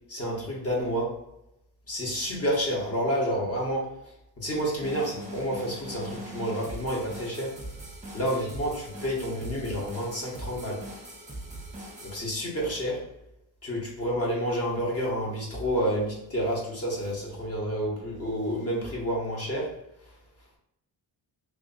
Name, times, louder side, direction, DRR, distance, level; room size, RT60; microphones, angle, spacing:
voice 1, 0.1-1.2 1.9-3.9 4.4-7.5 8.1-8.7 9.0-10.8 12.0-13.0 13.6-19.7, equal, 35° left, -3 dB, 1.2 m, -29 dB
sound 1, 4.8-12.2, right 1 dB, 15° right, 0.8 m, -41 dB
3.4 x 2.5 x 3.9 m, 0.83 s
wide cardioid pair, 145°, 44 cm